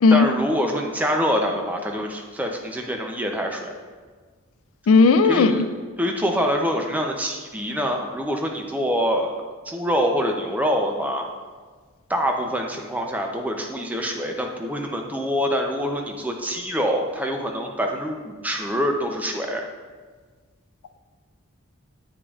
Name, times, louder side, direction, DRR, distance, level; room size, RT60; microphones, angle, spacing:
voice 1, 0.1-3.7 5.2-5.6 6.0-9.4 9.7-11.3 12.1-19.6, equal, 5° right, 2 dB, 0.5 m, -25 dB
voice 2, 4.9-5.7, left 4 dB, 75° left, 10 dB, 0.4 m, -15 dB
8.4 x 5.1 x 2.4 m, 1.5 s
head